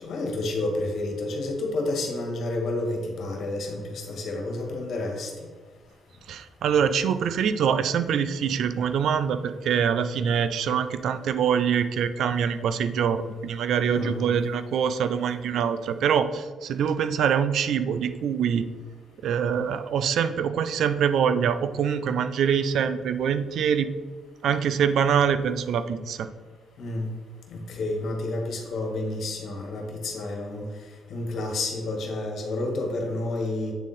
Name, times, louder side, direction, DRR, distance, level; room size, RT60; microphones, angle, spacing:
voice 1, 0.0-5.3 13.9-14.3 26.8-27.1 27.5-30.7 31.1-33.7, left 2 dB, 65° left, 1 dB, 1.6 m, -30 dB
voice 2, 6.3-18.7 19.2-23.9 24.4-26.3, right 7 dB, 70° right, 12 dB, 0.4 m, -24 dB
8.2 x 3.7 x 4.1 m, 1.4 s
cardioid pair, 90°, 0 cm